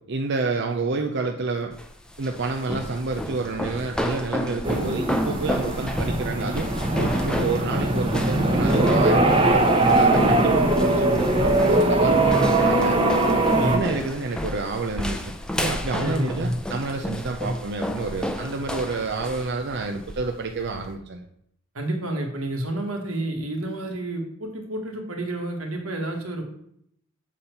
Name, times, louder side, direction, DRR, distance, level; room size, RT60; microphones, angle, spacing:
voice 1, 0.0-1.7 2.2-6.7 7.0-13.0 13.3-15.2 15.6-21.3, right 3 dB, 55° right, 4 dB, 0.6 m, -29 dB
sound 1, 1.7-20.9, left 1 dB, 5° left, 0.6 m, -32 dB
sound 2, 4.6-13.8, right 2 dB, 25° right, 1.0 m, -21 dB
voice 2, 12.2-12.7 13.6-13.9 16.0-16.5 17.4-17.5 21.7-26.4, right 1 dB, 90° right, 2 dB, 1.9 m, -29 dB
7.4 x 4.3 x 6.6 m, 0.72 s
head